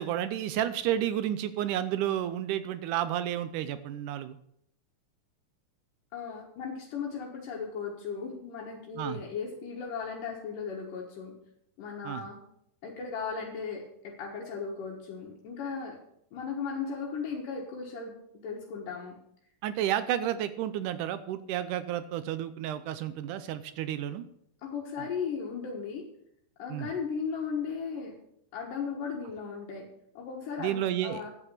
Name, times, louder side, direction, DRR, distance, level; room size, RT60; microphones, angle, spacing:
voice 1, 0.0-4.4 9.0-9.2 12.0-12.2 19.6-24.3 25.0-25.1 26.7-26.9 30.6-31.2, right 11 dB, 80° right, 12 dB, 2.1 m, -31 dB
voice 2, 6.1-11.3 11.8-12.4 12.8-16.0 16.3-18.1 18.4-19.1 24.6-26.0 26.6-28.1 28.5-29.9 30.1-31.3, left 6 dB, 75° left, -3 dB, 3.1 m, -36 dB
11.0 x 8.4 x 6.7 m, 0.73 s
omnidirectional pair, 3.8 m